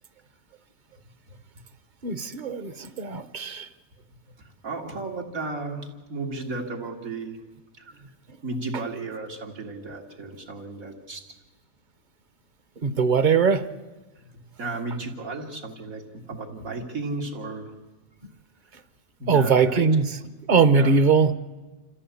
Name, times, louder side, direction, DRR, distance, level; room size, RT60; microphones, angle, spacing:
voice 1, 2.0-3.7 12.8-13.7 19.3-20.2 20.5-21.3, right 5 dB, 40° right, 13 dB, 0.8 m, -21 dB
voice 2, 4.4-7.4 7.8-7.9 8.4-11.2 14.6-17.7 19.2-19.9 20.7-20.9, right 3 dB, 85° right, 1 dB, 2.8 m, -34 dB
27.5 x 14.5 x 8.4 m, 1.2 s
omnidirectional pair, 1.4 m